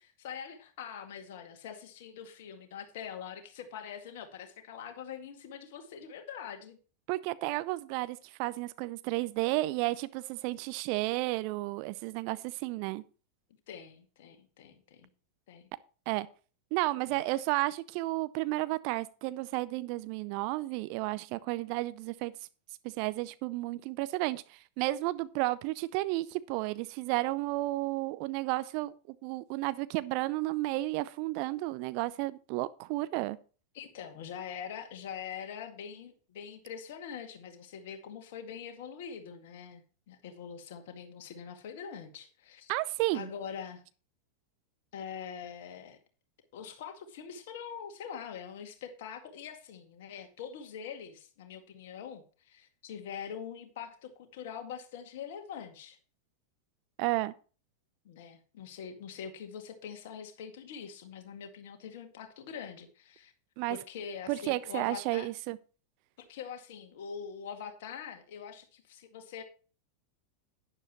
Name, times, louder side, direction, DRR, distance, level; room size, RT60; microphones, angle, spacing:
voice 1, 0.2-6.8 13.7-15.1 15.5-15.6 17.0-17.2 33.7-42.7 43.1-43.8 44.9-46.0 46.5-56.0 58.0-63.3 63.7-65.3 66.2-69.4, left 7 dB, 55° left, 2.0 m, -44 dB
voice 2, 7.1-13.0 16.1-16.3 16.7-22.3 23.0-28.9 29.2-33.4 42.7-43.3 57.0-57.3 63.6-63.8 64.3-65.6, right 19 dB, 45° right, 0.5 m, -32 dB
11.5 x 10.0 x 3.0 m
figure-of-eight pair, 90°, 0 cm